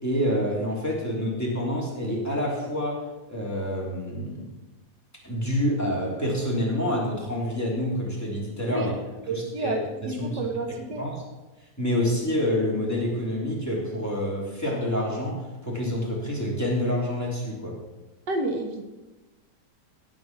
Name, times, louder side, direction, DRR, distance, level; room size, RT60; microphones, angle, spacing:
voice 1, 0.0-3.0 3.3-4.4 5.2-8.9 9.3-10.3 11.0-11.1 11.8-17.8, equal, 10° left, -5 dB, 3.4 m, -27 dB
voice 2, 9.3-11.1 18.3-18.8, right 2 dB, 80° right, 4 dB, 2.0 m, -30 dB
16.5 x 5.8 x 6.1 m, 1.1 s
omnidirectional pair, 1.8 m